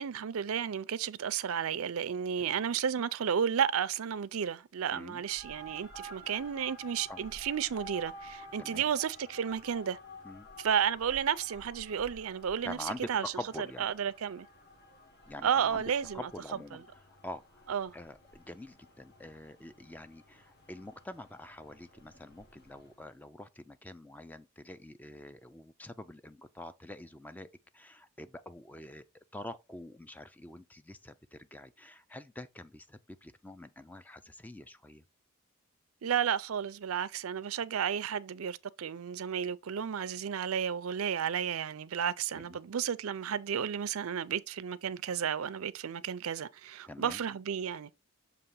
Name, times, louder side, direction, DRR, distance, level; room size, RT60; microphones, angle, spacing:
voice 1, 0.0-10.0 10.6-13.2 13.6-14.5 15.4-16.3 16.7-16.8 17.7-17.9 36.0-47.9, right 8 dB, 80° right, 0.5 m, -32 dB
voice 2, 4.9-5.2 7.1-7.2 8.6-8.8 10.2-10.5 12.6-13.1 13.4-13.9 15.3-15.8 16.1-16.8 17.2-17.7 17.9-27.5 27.7-35.0 42.3-42.6 46.9-47.2, left 1 dB, 10° left, 0.3 m, -46 dB
sound 1, 5.2-23.1, equal, 45° left, 1.5 m, -52 dB
6.9 x 2.9 x 5.4 m
head